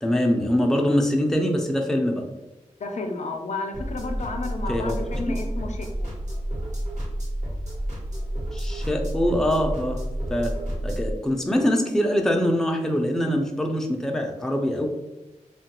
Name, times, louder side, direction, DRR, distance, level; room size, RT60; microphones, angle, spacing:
voice 1, 0.0-2.2 4.7-5.0 5.3-5.4 8.5-10.0 10.3-10.5 10.8-14.9, equal, 5° left, 2 dB, 0.4 m, -23 dB
voice 2, 2.8-6.1, left 3 dB, 65° left, 3 dB, 0.4 m, -32 dB
sound 1, 3.7-11.1, right 1 dB, 70° right, 1.0 m, -30 dB
3.0 x 2.2 x 2.9 m, 0.99 s
wide cardioid pair, 105°, 13 cm